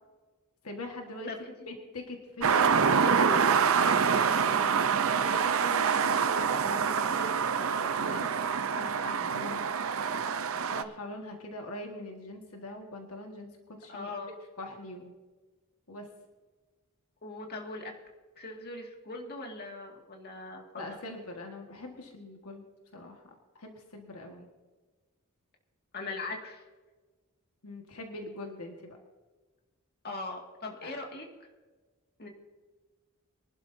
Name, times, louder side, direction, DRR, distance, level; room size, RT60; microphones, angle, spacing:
voice 1, 0.6-1.3 1.7-3.0 4.3-4.8 5.1-6.3 6.6-9.6 10.7-13.5 13.8-14.1 14.6-15.1 15.9-16.1 20.8-22.6 22.9-23.2 23.5-24.5 27.6-29.0 30.8-30.9, left 2 dB, 75° left, 2 dB, 1.6 m, -43 dB
voice 2, 1.3-1.7 2.9-3.5 9.4-9.6 13.9-14.3 17.2-17.9 18.4-21.0 25.9-26.6 30.0-31.3 32.2-32.3, left 2 dB, 50° left, 1 dB, 2.1 m, -40 dB
sound 1, 2.4-10.8, right 6 dB, 65° right, 0.7 m, -26 dB
24.0 x 11.5 x 2.7 m, 1.3 s
head